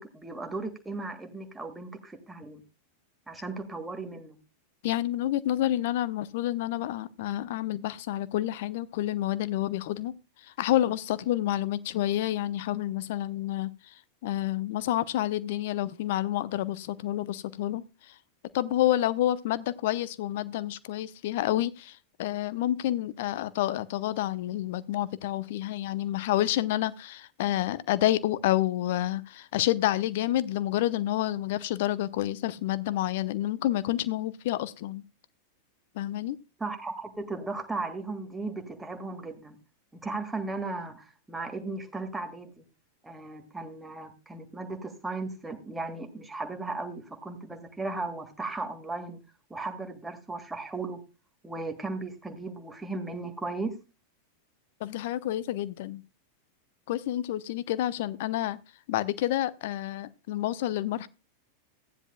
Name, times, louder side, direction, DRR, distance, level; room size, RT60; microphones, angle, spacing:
voice 1, 0.0-2.6 3.3-4.4 36.6-39.6 40.0-42.6 43.0-49.2 49.5-51.0 51.4-53.8, right 3 dB, 10° right, 1.7 m, -36 dB
voice 2, 4.8-10.1 10.4-18.2 18.5-35.0 35.9-36.4 54.8-56.0 56.9-58.6 58.9-61.1, left 13 dB, 50° left, 0.7 m, -29 dB
15.5 x 9.9 x 2.2 m
figure-of-eight pair, 90°, 0 cm